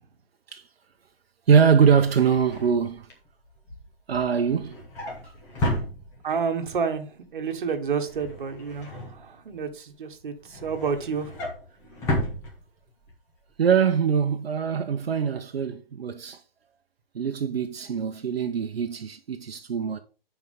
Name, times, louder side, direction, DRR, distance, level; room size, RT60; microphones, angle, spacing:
voice 1, 1.5-3.1 4.1-4.8 5.6-5.8 13.6-16.4 17.1-20.0, right 7 dB, 85° right, 0.9 m, -23 dB
Drawer open or close, 1.7-6.6 6.9-7.3 7.5-9.7 10.1-13.1 13.5-13.7 13.9-14.0, left 1 dB, 10° left, 1.0 m, -34 dB
voice 2, 6.2-11.3, right 5 dB, 55° right, 1.4 m, -30 dB
11.0 x 4.7 x 3.6 m
hypercardioid pair, 170°, 29 cm